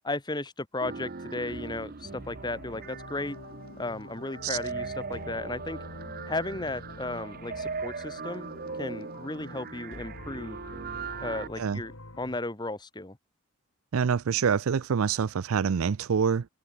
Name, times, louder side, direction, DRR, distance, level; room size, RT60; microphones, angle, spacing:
voice 1, 0.0-3.4 3.8-5.8 6.3-8.5 8.8-10.6 11.2-11.9 12.2-13.2, left 2 dB, 20° left, 1.3 m, -35 dB
sound 1, 0.8-11.5, right 4 dB, 40° right, 0.8 m, -39 dB
sound 2, 2.1-12.4, left 1 dB, 60° left, 2.6 m, -46 dB
voice 2, 13.9-16.5, right 6 dB, 70° right, 0.4 m, -26 dB
head